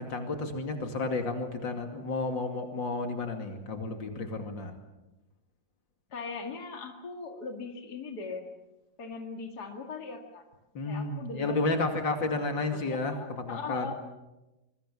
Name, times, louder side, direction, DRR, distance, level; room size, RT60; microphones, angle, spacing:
voice 1, 0.0-4.7 10.7-13.9, left 3 dB, 80° left, 5 dB, 3.2 m, -32 dB
voice 2, 6.1-8.5 9.0-10.4 10.9-11.8 12.6-13.9, left 4 dB, 55° left, 4 dB, 2.7 m, -40 dB
25.5 x 23.0 x 7.2 m, 1.0 s
omnidirectional pair, 2.0 m